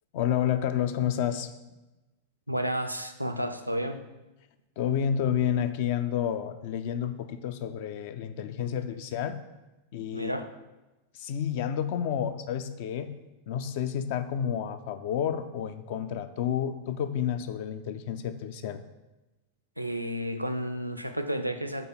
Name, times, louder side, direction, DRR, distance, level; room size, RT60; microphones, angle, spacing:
voice 1, 0.1-1.5 4.8-9.4 9.9-10.3 11.1-13.1 13.5-18.8, left 9 dB, 50° left, 10 dB, 0.4 m, -30 dB
voice 2, 2.5-4.0 10.1-10.5 19.8-21.9, equal, 90° right, 8 dB, 0.4 m, -31 dB
5.4 x 4.0 x 5.5 m, 1.1 s
figure-of-eight pair, 90°, 0 cm